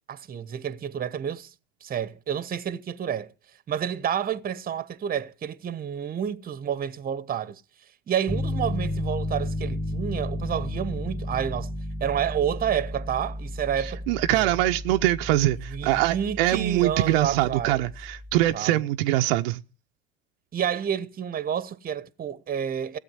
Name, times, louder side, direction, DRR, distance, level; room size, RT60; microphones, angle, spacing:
voice 1, 0.1-1.5 1.8-3.3 3.7-7.6 8.1-11.7 12.0-14.0 14.3-14.5 15.7-17.8 18.5-18.8 20.5-23.0, right 9 dB, 25° right, 1.1 m, -29 dB
Piano, 8.3-18.5, left 1 dB, 5° left, 1.8 m, -33 dB
voice 2, 14.1-19.6, right 15 dB, 60° right, 0.8 m, -23 dB
17.0 x 8.3 x 9.7 m
hypercardioid pair, 75°, 33 cm